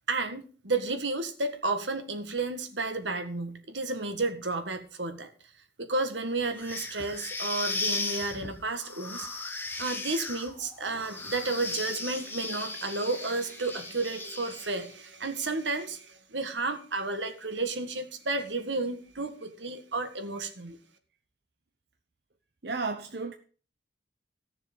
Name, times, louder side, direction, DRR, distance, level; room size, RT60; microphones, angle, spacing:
voice 1, 0.1-5.3 5.8-9.3 9.8-20.8, right 3 dB, 90° right, 1.7 m, -32 dB
sound 1, 6.6-14.9, left 3 dB, 10° left, 1.6 m, -36 dB
voice 2, 22.6-23.3, right 4 dB, 65° right, 0.9 m, -33 dB
14.5 x 6.9 x 5.4 m
head